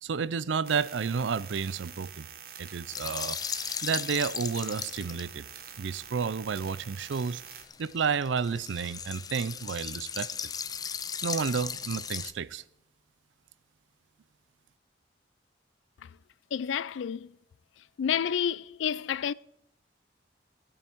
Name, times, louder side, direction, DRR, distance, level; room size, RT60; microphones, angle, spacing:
voice 1, 0.0-2.3 2.6-3.4 3.8-5.5 5.8-7.4 7.8-10.3 11.2-12.6, right 6 dB, 80° right, 0.5 m, -31 dB
sound 1, 0.6-7.6, right 8 dB, 50° right, 1.3 m, -46 dB
sound 2, 2.9-5.3 7.0-12.3, left 7 dB, 20° left, 0.4 m, -36 dB
voice 2, 16.5-17.3 18.0-19.3, left 8 dB, 85° left, 0.4 m, -30 dB
16.5 x 8.9 x 4.5 m
head